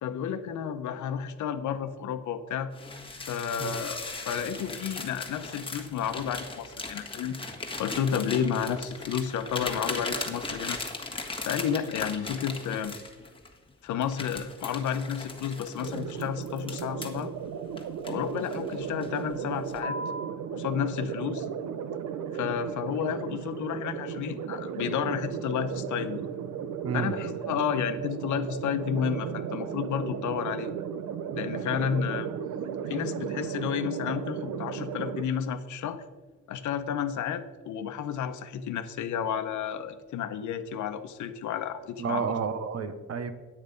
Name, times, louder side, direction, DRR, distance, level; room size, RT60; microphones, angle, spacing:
voice 1, 0.0-2.7 3.2-7.4 7.8-10.8 11.4-12.9 13.8-17.3 18.1-20.0 20.5-21.5 22.3-26.2 26.9-30.7 31.4-32.3 32.9-36.0 36.5-42.4, left 8 dB, 75° left, 9 dB, 1.0 m, -31 dB
sound 1, 2.7-13.5 14.0-17.2 17.8-18.7 19.0-19.3 19.8-20.3, left 2 dB, 15° left, 1.7 m, -38 dB
sound 2, 15.8-35.2, right 8 dB, 75° right, 0.9 m, -35 dB
voice 2, 26.8-27.1 42.0-43.3, right 6 dB, 55° right, 10 dB, 1.2 m, -30 dB
9.6 x 8.9 x 5.2 m, 1.3 s
cardioid pair, 90°, 30 cm